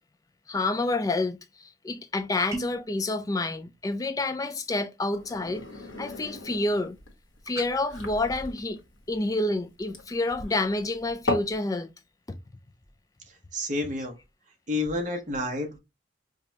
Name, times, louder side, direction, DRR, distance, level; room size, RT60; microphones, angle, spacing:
voice 1, 0.5-5.7 6.0-7.0 7.5-8.8 9.1-11.9 12.3-12.4, left 2 dB, 15° left, 0.3 m, -28 dB
sound 1, 2.5-2.9 7.5-7.7, right 2 dB, 15° right, 0.7 m, -36 dB
sound 2, 5.1-11.6, left 2 dB, 90° left, 1.2 m, -36 dB
voice 2, 13.3-14.2 14.7-15.8, left 2 dB, 40° right, 1.0 m, -30 dB
5.0 x 2.2 x 2.8 m
head